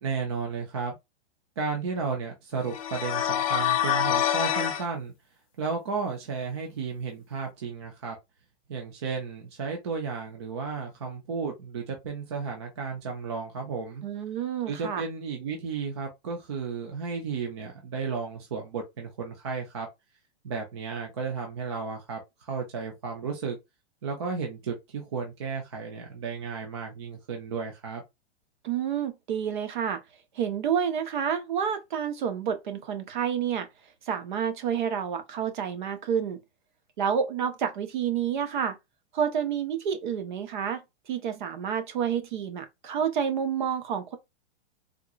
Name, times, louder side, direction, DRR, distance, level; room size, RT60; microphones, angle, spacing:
voice 1, 0.0-1.0 1.6-5.1 5.6-8.2 8.7-14.0 14.7-19.9 20.4-23.6 24.0-28.0, right 5 dB, 25° right, 0.4 m, -33 dB
sound 1, 2.7-4.8, left 10 dB, 30° left, 0.5 m, -26 dB
voice 2, 14.0-15.0 28.6-30.0 30.3-33.7 34.1-36.4 37.0-38.8 39.1-40.8 41.1-44.2, right 8 dB, 45° right, 0.9 m, -29 dB
3.7 x 2.9 x 2.3 m
supercardioid pair, 175°, 34 cm